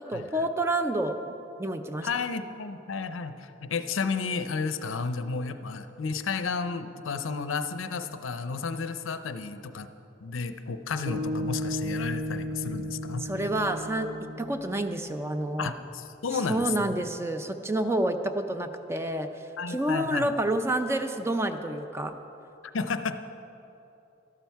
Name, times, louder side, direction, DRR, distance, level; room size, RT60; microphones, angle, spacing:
voice 1, 0.1-1.2 1.6-2.1 13.2-14.1 14.4-15.7 16.5-19.3 19.7-22.1, right 1 dB, 15° right, 7 dB, 0.5 m, -28 dB
voice 2, 2.0-9.9 10.2-13.2 15.6-16.9 19.6-20.3 22.7-23.2, left 5 dB, 85° left, 10 dB, 0.6 m, -32 dB
sound 1, 11.0-15.4, equal, 80° right, 1.9 m, -35 dB
12.5 x 11.5 x 4.6 m, 3.0 s
head